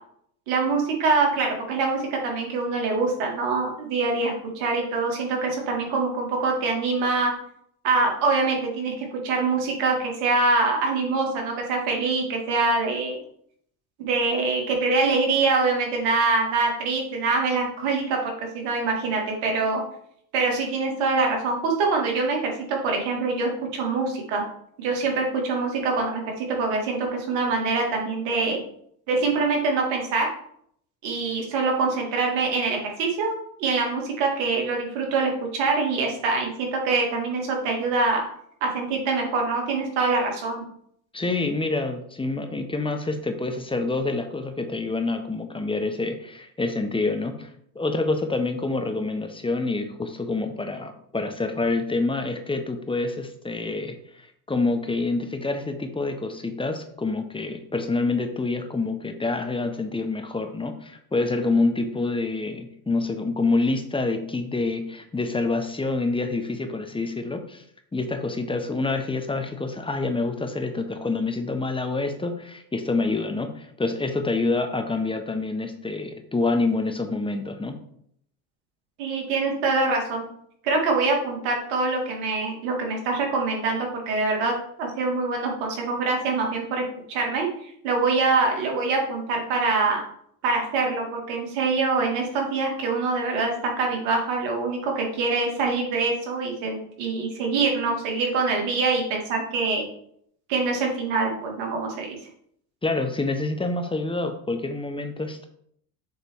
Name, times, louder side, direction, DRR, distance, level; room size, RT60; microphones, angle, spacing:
voice 1, 0.5-7.3 7.8-13.2 14.0-19.8 20.3-24.4 24.8-28.6 29.1-30.3 31.0-33.3 33.6-38.2 38.6-40.6 79.0-80.3 80.6-84.5 84.8-90.0 90.4-99.9 100.5-102.2, right 3 dB, 75° right, 0 dB, 2.2 m, -24 dB
voice 2, 41.1-47.5 47.7-67.6 67.9-77.8 102.8-105.5, left 3 dB, 10° left, 7 dB, 0.8 m, -27 dB
7.1 x 3.3 x 4.6 m, 0.68 s
supercardioid pair, 95°, 46 cm